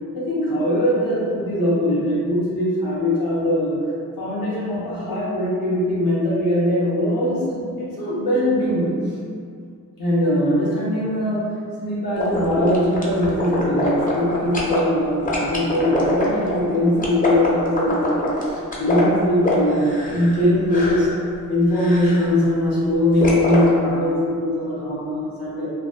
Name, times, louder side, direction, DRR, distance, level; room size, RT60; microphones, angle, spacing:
voice 1, 0.1-3.8 4.2-8.9 10.0-11.4 11.8-21.1 21.5-25.7, left 1 dB, 90° left, -8 dB, 0.9 m, -21 dB
sound 1, 12.2-14.8 15.3-20.4 20.7-21.1 21.7-22.3 23.2-23.6, left 1 dB, 25° left, 0.5 m, -25 dB
2.6 x 2.2 x 2.5 m, 2.3 s
wide cardioid pair, 80°, 33 cm